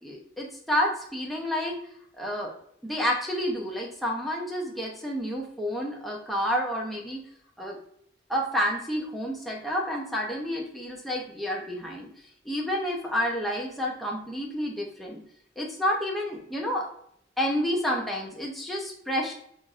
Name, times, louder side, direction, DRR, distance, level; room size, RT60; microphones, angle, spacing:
voice 1, 0.0-1.8 2.2-2.5 2.8-7.2 7.6-7.8 8.3-12.1 12.4-15.2 15.6-16.9 17.4-19.3, equal, ahead, -2 dB, 0.6 m, -29 dB
5.7 x 2.6 x 2.4 m, 0.68 s
head